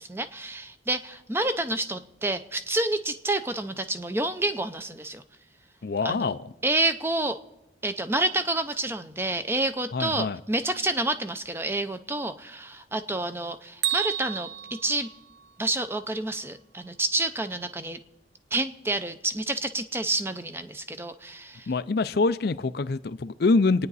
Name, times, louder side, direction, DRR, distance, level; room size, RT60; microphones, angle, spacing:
voice 1, 0.0-5.2 6.0-6.4 6.6-7.4 7.8-14.5 14.8-15.1 15.6-18.0 18.5-21.7, right 2 dB, 15° right, 0.6 m, -29 dB
voice 2, 5.8-6.4 9.9-10.4 21.7-23.9, left 3 dB, 55° left, 0.5 m, -25 dB
Bell, 13.8-15.9, right 10 dB, 60° right, 0.7 m, -32 dB
27.0 x 9.5 x 4.1 m
head